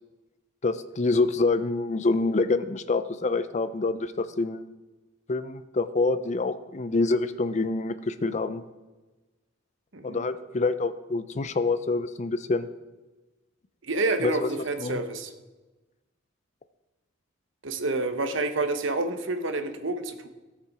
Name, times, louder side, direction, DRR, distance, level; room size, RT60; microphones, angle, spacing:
voice 1, 0.6-4.6 5.3-8.6 10.0-12.7 14.2-14.5 14.8-15.0, left 3 dB, 35° left, 13 dB, 0.5 m, -26 dB
voice 2, 9.9-10.3 13.8-15.3 17.6-20.3, right 2 dB, 65° right, 8 dB, 1.0 m, -28 dB
16.0 x 6.8 x 4.8 m, 1.2 s
head